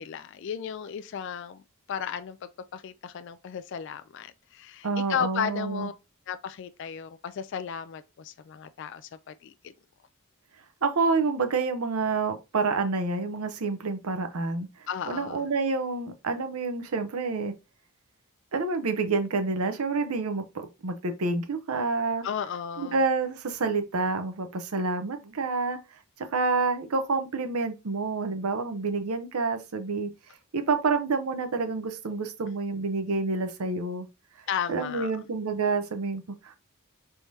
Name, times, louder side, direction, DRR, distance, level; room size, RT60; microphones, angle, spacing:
voice 1, 0.0-1.6 1.9-5.9 6.3-9.7 14.9-15.5 22.2-23.0 34.5-35.1, left 8 dB, 55° left, 0.3 m, -34 dB
voice 2, 4.8-5.9 10.8-17.5 18.5-22.2 22.8-25.8 26.2-30.1 30.5-34.1 34.7-36.5, right 4 dB, 85° right, 0.7 m, -28 dB
4.6 x 3.5 x 2.7 m
head